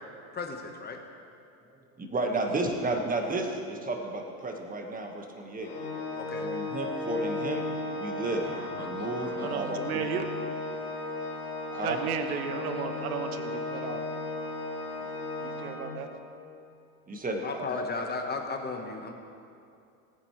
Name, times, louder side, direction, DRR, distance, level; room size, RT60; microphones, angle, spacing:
voice 1, 0.3-1.0 6.1-6.5 17.4-19.1, left 3 dB, 20° left, 3 dB, 1.5 m, -34 dB
voice 2, 1.7-5.7 6.4-7.7 8.0-8.5 8.8-10.0 11.7-12.0 17.1-17.7, right 2 dB, 20° right, 2 dB, 1.7 m, -32 dB
Organ, 5.6-16.3, left 2 dB, 80° left, 2.1 m, -35 dB
voice 3, 8.4-10.2 11.8-14.0 15.4-16.1, right 8 dB, 80° right, 7 dB, 1.1 m, -35 dB
18.5 x 9.9 x 3.4 m, 2.5 s
hypercardioid pair, 90°, 44 cm